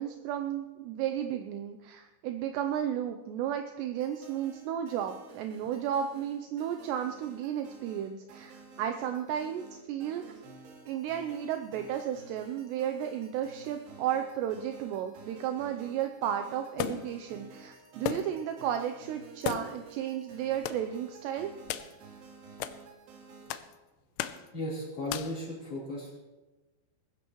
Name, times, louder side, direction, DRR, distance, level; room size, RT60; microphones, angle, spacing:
voice 1, 0.0-10.2 10.9-21.5, right 10 dB, 80° right, 6 dB, 2.5 m, -33 dB
sound 1, 4.0-23.6, right 4 dB, 60° right, 3.7 m, -52 dB
sound 2, 16.8-17.2 18.0-18.5 18.7-18.8 19.4-19.9 20.6-20.8 21.7-21.9 22.6-22.8 23.5-23.7 24.2-24.5 25.1-25.4, left 12 dB, 85° left, 3.1 m, -35 dB
voice 2, 24.5-26.1, left 1 dB, 35° left, -8 dB, 4.2 m, -36 dB
20.5 x 15.5 x 3.1 m, 1.1 s
omnidirectional pair, 5.6 m